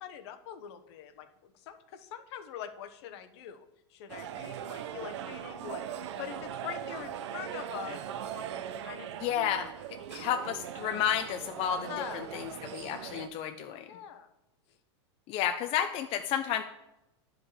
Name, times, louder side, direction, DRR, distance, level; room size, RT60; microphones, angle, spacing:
voice 1, 0.0-8.0 8.3-9.1 11.9-12.3 13.9-14.3, left 9 dB, 65° left, 9 dB, 1.0 m, -43 dB
sound 1, 4.1-13.3, right 9 dB, 75° right, 0.8 m, -40 dB
voice 2, 9.2-9.7 10.1-13.9 15.3-16.6, left 9 dB, 40° left, 7 dB, 0.5 m, -31 dB
10.5 x 5.0 x 4.9 m, 0.90 s
supercardioid pair, 130°, 15 cm